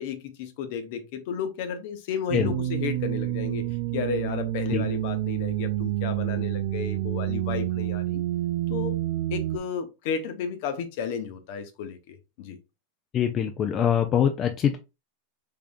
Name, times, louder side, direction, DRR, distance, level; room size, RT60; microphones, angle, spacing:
voice 1, 0.0-3.7 3.9-8.2 8.7-9.0 9.3-12.6, left 7 dB, 60° left, 0.8 m, -33 dB
sound 1, 2.3-9.6, right 14 dB, 65° right, 0.3 m, -28 dB
voice 2, 13.1-14.8, left 9 dB, 30° left, 0.4 m, -23 dB
3.6 x 3.3 x 2.5 m
supercardioid pair, 140°, 0 cm